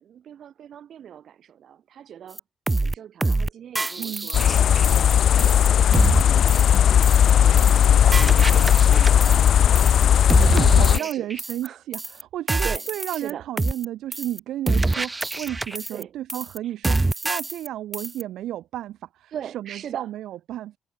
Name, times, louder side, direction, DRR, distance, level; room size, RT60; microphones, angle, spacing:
voice 1, 0.0-2.4 2.8-4.4 4.7-6.4 6.9-9.7 10.3-11.3 11.6-11.8 12.6-13.5 15.9-16.1 16.6-16.7 19.3-20.1, right 9 dB, 65° right, 2.9 m, -39 dB
sound 1, 2.4-2.5 2.7-2.9 3.2-3.5 3.7-5.1 5.4-5.7 5.9-6.2 6.5-6.8 7.0-7.3 7.6-7.8 8.1-9.5 9.7-10.0 10.3-11.7 11.9-12.2 12.5-13.3 13.6-13.8 14.1-14.4 14.7-16.0 16.3-16.6 16.8-17.7 17.9-18.2, right 2 dB, 20° right, 1.5 m, -25 dB
voice 2, 4.0-4.3 10.3-20.8, right 13 dB, 80° right, 1.0 m, -33 dB
sound 2, 4.3-11.0, left 9 dB, 65° left, 0.4 m, -17 dB
cardioid pair, 90°, 0 cm